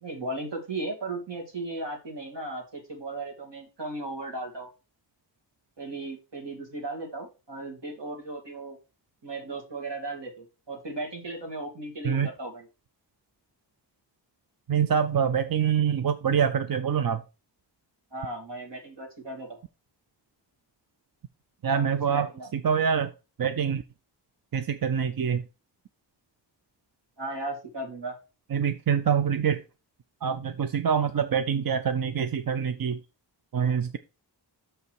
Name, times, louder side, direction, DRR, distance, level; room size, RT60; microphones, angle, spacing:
voice 1, 0.0-4.7 5.8-8.8 9.2-12.7 18.1-19.6 21.6-22.5 27.2-28.2, right 2 dB, 70° right, 2.8 m, -36 dB
voice 2, 14.7-17.2 21.6-22.3 22.6-23.1 23.4-23.8 24.5-25.4 28.5-29.6 30.2-33.0 33.5-34.0, right 7 dB, 50° right, 0.6 m, -25 dB
6.5 x 5.7 x 4.6 m
wide cardioid pair, 60°, 44 cm